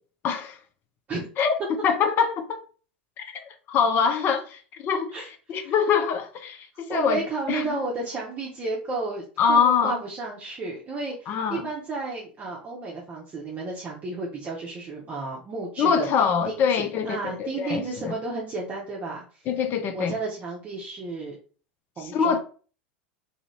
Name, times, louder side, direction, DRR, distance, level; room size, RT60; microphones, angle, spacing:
voice 1, 0.2-0.6 1.4-2.6 3.2-5.1 5.5-7.2 7.5-7.8 9.4-10.0 11.3-11.7 15.8-18.1 19.5-20.1 22.1-22.4, left 6 dB, 40° left, 0.6 m, -24 dB
voice 2, 5.1-5.8 6.9-19.5 19.9-21.4 22.0-22.4, right 3 dB, 30° right, 0.8 m, -33 dB
2.7 x 2.5 x 3.2 m
figure-of-eight pair, 80°, 6 cm